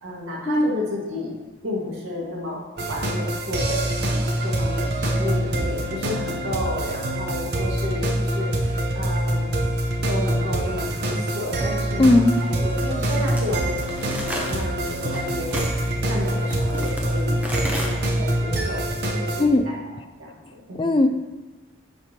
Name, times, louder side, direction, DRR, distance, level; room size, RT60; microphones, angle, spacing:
voice 1, 0.0-1.4 1.6-9.6 10.1-18.9 19.1-20.9, left 1 dB, 75° right, -3 dB, 1.7 m, -32 dB
sound 1, 2.8-19.4, right 1 dB, 50° right, 0.7 m, -25 dB
sound 2, 11.0-17.9, equal, 5° right, 0.7 m, -34 dB
voice 2, 12.0-12.4 19.4-19.6 20.8-21.2, left 2 dB, 25° left, 7 dB, 0.3 m, -17 dB
10.0 x 5.1 x 2.9 m, 1.2 s
head